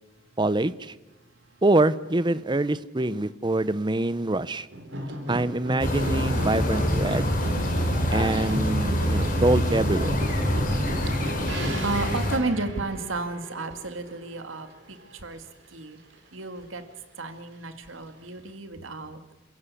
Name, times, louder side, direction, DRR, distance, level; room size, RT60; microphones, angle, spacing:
voice 1, 0.4-0.9 1.6-4.7 5.3-7.3 8.1-10.2, right 2 dB, 25° right, 15 dB, 0.7 m, -25 dB
sound 1, 4.7-14.7 15.0-15.8 16.1-16.2, equal, 65° right, 4.0 m, -33 dB
sound 2, 5.8-12.4, equal, 45° left, 3.9 m, -26 dB
voice 2, 11.1-11.5 11.8-15.4 15.7-16.0 16.3-16.8 17.2-19.2, right 3 dB, 85° right, 7 dB, 2.3 m, -33 dB
28.0 x 16.0 x 8.4 m, 1.1 s
head